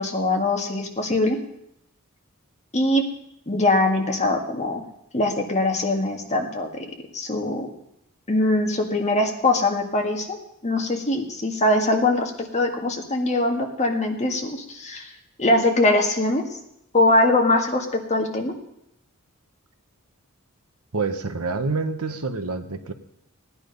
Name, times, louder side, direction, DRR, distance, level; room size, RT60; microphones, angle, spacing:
voice 1, 0.0-1.4 2.7-3.0 3.5-4.8 5.1-6.9 7.1-7.7 8.3-10.4 10.6-15.1 15.4-16.4 16.9-18.5, left 2 dB, 30° left, 2 dB, 1.8 m, -22 dB
voice 2, 20.9-22.9, right 3 dB, 75° right, 8 dB, 1.1 m, -27 dB
17.0 x 9.9 x 5.3 m, 0.80 s
head